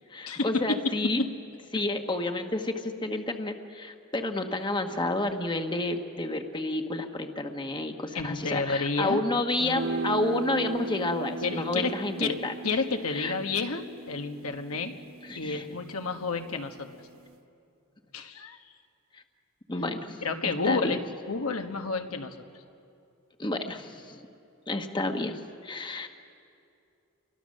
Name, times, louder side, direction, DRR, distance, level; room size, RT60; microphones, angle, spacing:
voice 1, 0.1-1.2 1.7-12.5 13.1-13.3 15.3-15.6 19.7-21.0 23.4-24.2 24.7-26.1, left 2 dB, 20° left, 5 dB, 1.1 m, -30 dB
voice 2, 8.1-9.2 11.4-11.9 12.2-12.3 12.6-15.0 15.4-16.9 18.1-18.6 20.2-21.0 21.3-22.3, left 4 dB, 85° left, 5 dB, 1.4 m, -30 dB
sound 1, 9.6-16.1, right 2 dB, 65° right, 1.0 m, -37 dB
30.0 x 24.0 x 6.5 m, 2.6 s
head